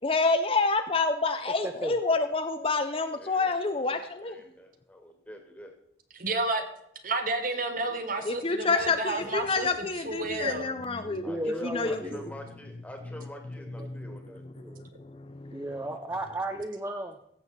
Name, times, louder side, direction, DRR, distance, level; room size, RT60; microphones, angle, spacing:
voice 1, 0.0-4.4 8.2-12.0 13.9-14.1 14.6-15.8, left 3 dB, 30° left, 8 dB, 0.6 m, -28 dB
voice 2, 1.6-2.0 11.0-12.3 13.8-14.8 15.5-17.2, right 1 dB, 15° right, 5 dB, 0.6 m, -35 dB
voice 3, 3.1-5.7 11.2-14.4, equal, 10° left, 3 dB, 1.8 m, -46 dB
voice 4, 6.1-6.6 7.0-9.7 10.0-10.7, right 2 dB, 45° right, 6 dB, 1.3 m, -30 dB
15.5 x 7.1 x 4.1 m, 0.75 s
head